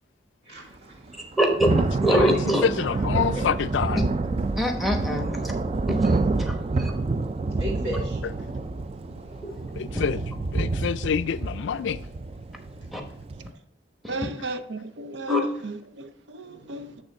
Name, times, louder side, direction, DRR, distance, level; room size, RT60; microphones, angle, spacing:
voice 1, 0.4-1.4 3.1-3.4 7.5-8.3 12.7-12.9 14.0-14.4 16.4-17.0, equal, 60° right, 2.4 m, -38 dB
Thunder / Rain, 1.1-13.5, right 3 dB, 30° right, 0.3 m, -28 dB
voice 2, 1.4-1.7 2.0-2.6 4.6-5.4 5.9-6.2 6.5-6.9 9.4-9.5 12.9-13.0 14.0-14.1 15.3-15.4, equal, ahead, 0.9 m, -24 dB
voice 3, 2.1-4.0 9.6-12.0, left 7 dB, 75° left, 0.3 m, -27 dB
voice 4, 14.1-16.9, right 2 dB, 75° right, 0.6 m, -35 dB
8.7 x 3.6 x 5.3 m
head